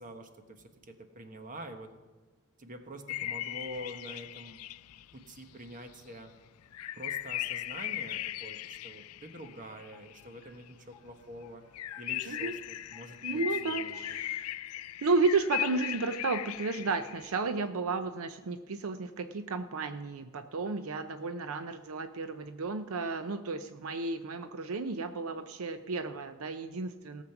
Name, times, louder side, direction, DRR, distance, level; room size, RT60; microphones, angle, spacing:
voice 1, 0.0-1.9 2.6-4.6 5.1-6.3 7.0-11.6 12.0-14.2, right 1 dB, 40° right, 6 dB, 1.3 m, -46 dB
sound 1, 3.1-5.9 6.2-6.3 6.7-10.7 11.1-11.2 11.4-11.5 11.7-17.4, left 13 dB, 80° left, 0.4 m, -38 dB
sound 2, 9.4-9.5 9.9-10.0 10.4-10.5 10.9-11.0 11.4-11.5 11.9-12.0 12.4-12.5 12.9-13.0 13.4-13.5 13.9-14.0, left 9 dB, ahead, 3.1 m, -57 dB
voice 2, 13.2-14.5 15.0-27.2, right 3 dB, 75° right, 9 dB, 0.6 m, -33 dB
17.5 x 7.4 x 5.9 m, 1.2 s
head